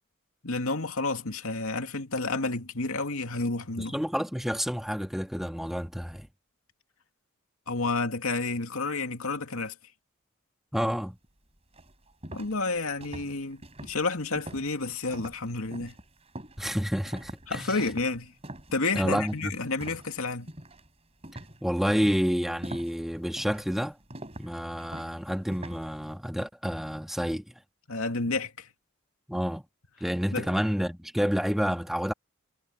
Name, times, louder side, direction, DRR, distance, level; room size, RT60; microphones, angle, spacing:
voice 1, 0.4-4.0 7.7-9.7 12.3-15.9 17.5-18.3 18.7-20.5 27.9-28.7 30.3-30.5, left 3 dB, 75° left, 2.5 m, -30 dB
voice 2, 3.8-6.3 10.7-11.2 16.6-17.8 18.9-19.5 21.6-24.0 24.4-27.4 29.3-29.6 30.0-32.1, equal, ahead, 1.5 m, -29 dB
sound 1, 11.2-11.3 11.7-20.2 20.5-20.9 21.2-25.9, right 1 dB, 30° right, 4.4 m, -44 dB
head